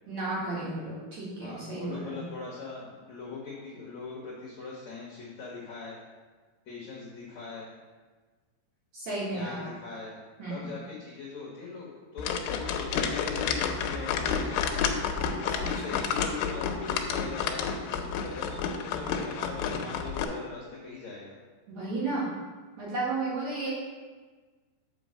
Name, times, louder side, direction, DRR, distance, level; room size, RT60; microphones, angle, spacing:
voice 1, 0.1-2.2 8.9-9.7 10.4-10.6 15.6-16.1 21.7-22.3 22.8-23.7, right 2 dB, 55° right, -8 dB, 2.4 m, -33 dB
voice 2, 1.4-6.0 6.7-7.7 9.3-10.2 10.5-14.9 15.4-21.3, left 4 dB, 65° left, -6 dB, 1.8 m, -41 dB
sound 1, 12.2-20.2, left 6 dB, 85° left, 2.7 m, -30 dB
7.0 x 5.1 x 6.3 m, 1.4 s
omnidirectional pair, 5.1 m